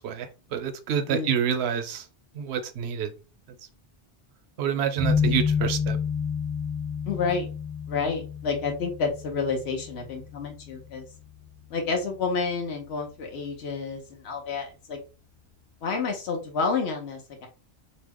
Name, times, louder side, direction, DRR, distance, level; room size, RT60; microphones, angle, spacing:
voice 1, 0.0-2.0 2.3-3.1 4.6-6.0, right 8 dB, 85° right, 9 dB, 0.8 m, -27 dB
voice 2, 1.1-1.4 7.1-7.4 7.9-11.0 11.7-15.0 15.8-17.5, left 4 dB, 85° left, 1 dB, 1.0 m, -29 dB
sound 1, 5.0-12.0, left 6 dB, 20° left, 0.8 m, -30 dB
2.8 x 2.1 x 3.4 m, 0.32 s
omnidirectional pair, 1.1 m